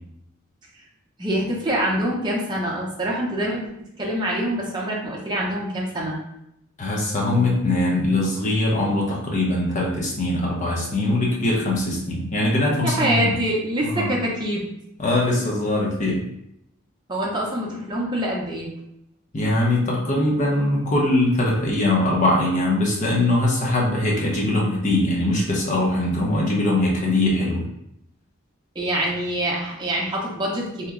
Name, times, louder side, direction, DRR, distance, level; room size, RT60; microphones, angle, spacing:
voice 1, 1.2-3.7 4.0-6.2 12.8-14.6 17.1-18.7 28.8-30.9, right 1 dB, 20° right, -3 dB, 0.6 m, -25 dB
voice 2, 6.8-13.4 13.9-14.1 15.0-16.2 19.3-27.6, left 1 dB, 35° left, -3 dB, 0.8 m, -21 dB
2.9 x 2.2 x 3.6 m, 0.79 s
head